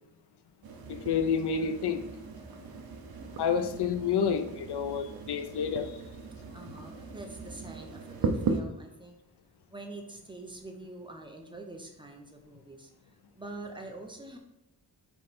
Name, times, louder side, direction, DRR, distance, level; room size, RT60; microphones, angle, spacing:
sound 1, 0.6-8.6, right 4 dB, 65° right, 0.9 m, -37 dB
voice 1, 0.9-2.0 3.4-6.0, left 6 dB, 90° left, 9 dB, 0.7 m, -29 dB
voice 2, 6.5-9.2 9.7-14.4, right 2 dB, 10° right, 2 dB, 0.8 m, -45 dB
7.9 x 3.2 x 4.3 m, 0.85 s
wide cardioid pair, 155°, 39 cm